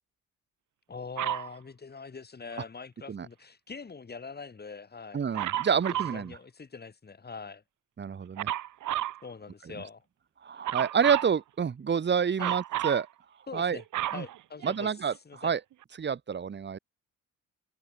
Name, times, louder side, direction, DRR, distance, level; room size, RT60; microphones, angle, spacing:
voice 1, 0.9-5.2 6.1-7.6 9.2-10.0 12.4-12.6 13.5-13.8 14.1-14.9 15.2-15.5, left 5 dB, 35° left, 6.7 m, -43 dB
Dog, 1.2-1.5 5.3-6.2 8.4-9.2 10.6-11.3 12.4-13.0 13.6-15.1 15.8-15.9, right 13 dB, 80° right, 3.5 m, -32 dB
voice 2, 5.1-6.4 8.0-8.5 10.4-13.1 13.5-13.8 14.1-14.2 14.6-15.6 16.0-16.8, right 7 dB, 35° right, 1.6 m, -28 dB
open air
cardioid pair, 90°, 30 cm